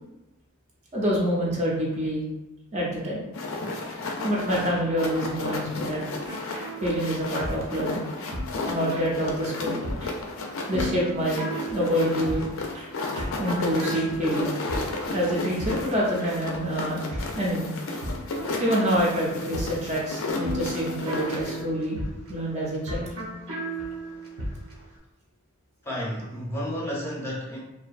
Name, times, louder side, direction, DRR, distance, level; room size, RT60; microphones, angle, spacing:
voice 1, 0.9-2.2 2.7-3.3 4.2-6.2 6.8-8.1 8.7-10.1 10.7-12.9 13.1-14.8 15.1-18.0 18.6-22.0 22.3-23.1, equal, 35° right, -4 dB, 0.5 m, -27 dB
sound 1, 3.3-21.6, left 2 dB, 65° left, 0.4 m, -33 dB
sound 2, 6.2-24.8, right 1 dB, 70° right, 0.7 m, -36 dB
voice 2, 25.8-27.6, equal, 10° left, -6 dB, 0.6 m, -31 dB
2.6 x 2.2 x 2.4 m, 1.0 s
head